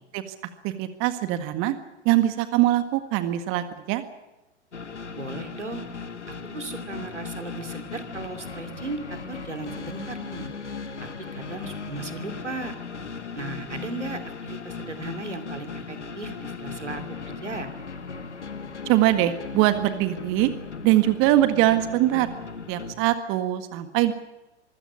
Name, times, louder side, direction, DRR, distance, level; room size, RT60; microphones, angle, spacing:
voice 1, 0.6-1.7 2.1-4.0 18.9-20.5 20.8-22.3 22.7-24.1, right 14 dB, 35° right, 10 dB, 1.8 m, -22 dB
sound 1, 4.7-22.9, left 5 dB, 80° left, 2.1 m, -37 dB
voice 2, 5.2-5.8 6.5-10.5 11.0-12.7 13.3-17.7, right 3 dB, 90° right, 7 dB, 2.9 m, -36 dB
25.0 x 16.0 x 8.6 m, 1.0 s
figure-of-eight pair, 100°, 35 cm